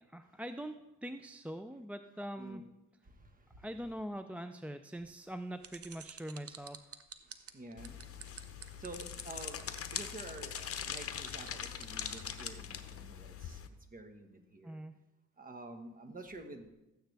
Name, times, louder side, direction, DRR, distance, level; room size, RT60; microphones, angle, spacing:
voice 1, 0.1-0.8 1.0-2.6 3.6-6.9 14.6-14.9, equal, 5° right, 9 dB, 0.4 m, -43 dB
voice 2, 3.2-3.6 7.5-8.0 8.3-8.4 8.8-13.6 13.9-14.8 15.4-16.7, right 2 dB, 30° right, 5 dB, 1.4 m, -49 dB
sound 1, 5.6-12.5, right 8 dB, 50° right, 0.9 m, -50 dB
sound 2, 7.8-13.7, left 8 dB, 50° left, 0.9 m, -42 dB
13.5 x 9.0 x 3.4 m, 0.98 s
cardioid pair, 90°, 30 cm